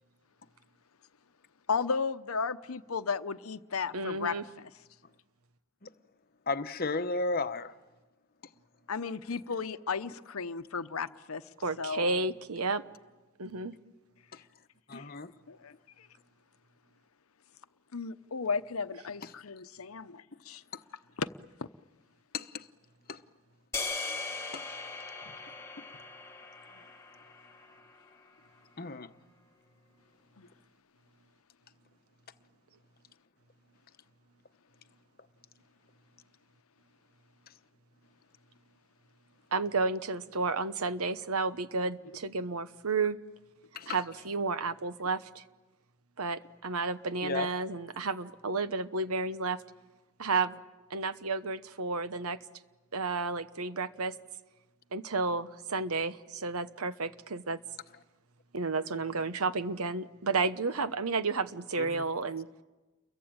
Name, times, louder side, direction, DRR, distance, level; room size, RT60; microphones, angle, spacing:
voice 1, 1.7-4.7 8.9-11.5 11.8-12.2 14.9-15.1 15.5-16.1 17.9-20.6 21.2-21.3 21.6-21.7 25.2-25.4 26.7-26.8 30.4-30.5, left 5 dB, 80° left, 0.9 m, -35 dB
voice 2, 3.9-4.4 11.6-12.8 13.4-13.7 39.5-43.2 43.9-45.4 46.2-49.6 50.2-50.6 50.9-52.4 52.9-54.2 54.9-57.6 58.5-62.5, right 3 dB, 85° right, 1.1 m, -32 dB
voice 3, 6.5-7.7 14.3-14.4 14.9-15.3 22.3-22.7 23.1-23.2 24.5-24.6 28.8-29.1 43.7-44.0 47.2-47.5 61.7-62.0, left 3 dB, 45° left, 1.0 m, -34 dB
sound 1, 23.7-28.1, left 3 dB, 10° left, 1.6 m, -39 dB
30.0 x 23.0 x 8.8 m
head